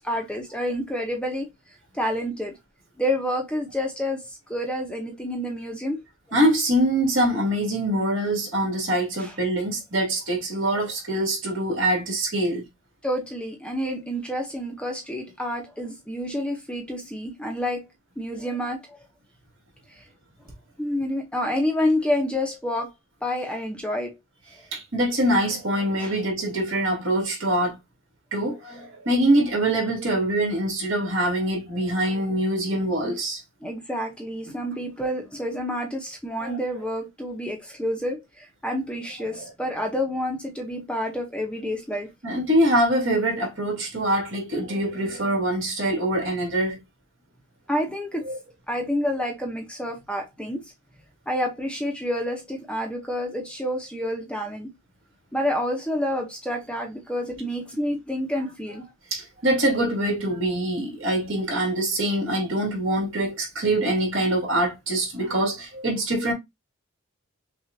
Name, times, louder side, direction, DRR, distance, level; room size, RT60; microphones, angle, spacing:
voice 1, 0.0-1.5 1.9-2.5 3.0-6.0 9.2-9.3 13.0-17.9 18.2-19.0 19.9-20.0 20.8-22.9 23.2-24.2 26.0-26.2 33.6-42.1 47.7-48.3 48.7-50.7 51.3-54.7 55.3-58.9, left 1 dB, 5° left, 0.7 m, -28 dB
voice 2, 6.3-12.6 24.7-27.8 28.3-33.4 36.4-36.6 39.4-39.5 42.2-46.8 48.2-48.4 59.1-66.3, right 1 dB, 65° right, 2.2 m, -24 dB
6.0 x 2.4 x 2.6 m
head